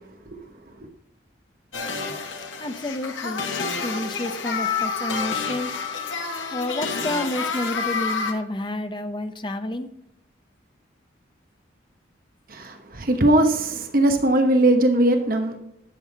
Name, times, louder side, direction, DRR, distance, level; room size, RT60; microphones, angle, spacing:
sound 1, 1.7-8.3, left 5 dB, 85° left, 1.3 m, -29 dB
voice 1, 2.6-5.8 6.5-9.9, left 1 dB, 25° left, 0.7 m, -30 dB
voice 2, 12.5-15.6, right 1 dB, 45° right, 1.0 m, -20 dB
12.0 x 7.5 x 3.4 m
head